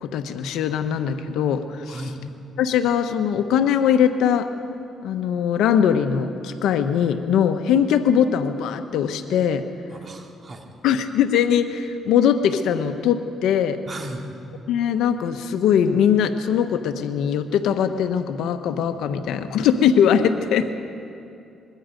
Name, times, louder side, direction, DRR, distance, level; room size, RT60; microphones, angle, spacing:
voice 1, 0.0-2.0 2.6-4.5 5.0-9.6 10.8-13.8 14.7-20.7, left 8 dB, 85° left, 8 dB, 1.2 m, -21 dB
voice 2, 1.9-2.2 9.9-10.7 13.9-14.2, right 1 dB, 40° right, 2 dB, 2.8 m, -36 dB
24.5 x 22.0 x 5.3 m, 2.6 s
cardioid pair, 90°, 0 cm